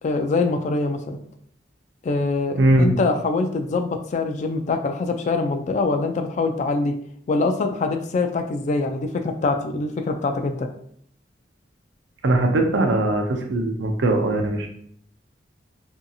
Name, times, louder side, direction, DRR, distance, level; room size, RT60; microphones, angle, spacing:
voice 1, 0.0-1.2 2.0-6.9 7.3-10.7, left 3 dB, 40° left, 6 dB, 0.3 m, -24 dB
voice 2, 2.6-2.9 12.2-14.7, right 2 dB, 75° right, 4 dB, 0.5 m, -20 dB
2.7 x 2.3 x 2.6 m, 0.63 s
head